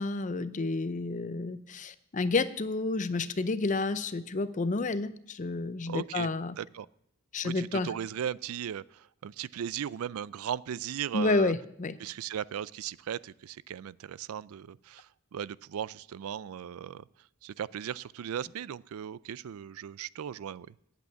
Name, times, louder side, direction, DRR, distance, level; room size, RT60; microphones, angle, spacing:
voice 1, 0.0-6.5 7.3-7.9 11.1-12.0, left 3 dB, 35° left, 14 dB, 0.5 m, -30 dB
voice 2, 5.9-6.3 6.6-6.9 7.4-11.5 12.0-17.0 17.4-20.7, right 9 dB, 80° right, 21 dB, 0.4 m, -37 dB
8.8 x 8.3 x 9.2 m, 0.74 s
head